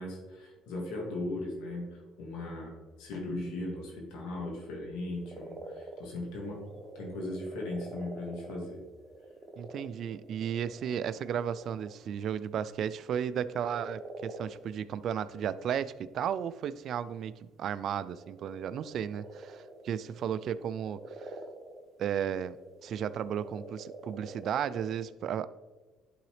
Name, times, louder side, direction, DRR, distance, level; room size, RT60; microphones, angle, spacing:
voice 1, 0.0-6.6 6.9-8.8, left 2 dB, 85° left, -1 dB, 2.2 m, -38 dB
sound 1, 5.3-12.0 13.5-14.5 15.2-15.8 16.1-16.2 17.9-24.9, right 2 dB, 35° right, 0.9 m, -47 dB
voice 2, 9.6-17.3 17.6-21.3 22.0-22.6 22.8-25.5, right 9 dB, 60° right, 15 dB, 0.3 m, -34 dB
11.0 x 3.9 x 3.3 m, 1.2 s
cardioid pair, 95°, 0 cm